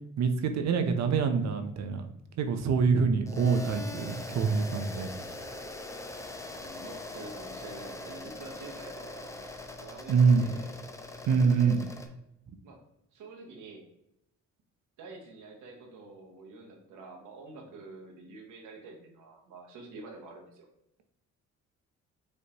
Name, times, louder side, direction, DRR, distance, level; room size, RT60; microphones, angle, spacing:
voice 1, 0.2-2.1 2.4-5.1 10.1-10.4 11.3-11.9, right 5 dB, 60° right, 7 dB, 0.6 m, -25 dB
sound 1, 3.3-12.1, left 2 dB, 10° left, 0.6 m, -42 dB
voice 2, 6.5-10.7 11.3-11.8 12.6-12.8 13.1-13.9 15.0-20.7, right 3 dB, 80° right, 1 dB, 1.1 m, -47 dB
5.2 x 3.2 x 2.8 m, 0.79 s
cardioid pair, 90°, 30 cm